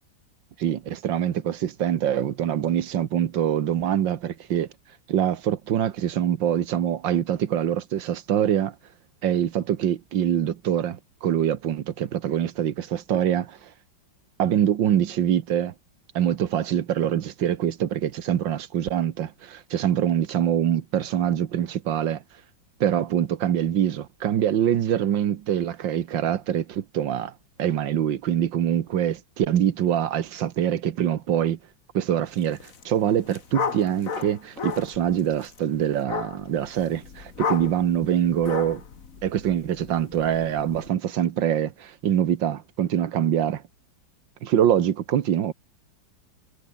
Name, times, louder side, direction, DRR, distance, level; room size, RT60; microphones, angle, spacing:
voice 1, 0.6-4.7 5.1-8.8 9.2-13.7 14.4-15.7 16.2-22.2 22.8-27.3 27.6-31.6 31.9-38.8 39.2-43.6 44.4-45.5, right 10 dB, 75° right, 1.8 m, -24 dB
sound 1, 32.5-32.8 33.1-40.9, left 6 dB, 45° left, 2.0 m, -34 dB
omnidirectional pair, 2.1 m